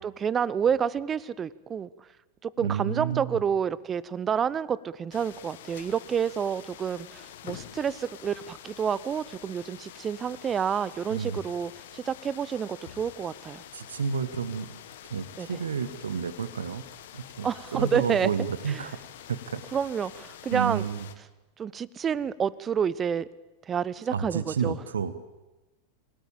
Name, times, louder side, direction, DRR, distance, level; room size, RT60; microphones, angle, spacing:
voice 1, 0.0-1.9 2.4-13.6 15.4-15.5 17.4-18.3 18.7-18.8 19.7-20.8 21.6-23.3 23.7-24.8, right 7 dB, 20° right, 21 dB, 0.8 m, -29 dB
voice 2, 2.6-3.4 11.1-11.4 13.7-14.7 15.1-16.8 17.1-19.0 19.3-19.6 20.5-21.1 24.1-25.2, right 6 dB, 70° right, 14 dB, 1.2 m, -30 dB
sound 1, 5.1-21.2, left 11 dB, 55° left, 1.8 m, -47 dB
27.5 x 18.0 x 8.8 m, 1.1 s
figure-of-eight pair, 90°, 0 cm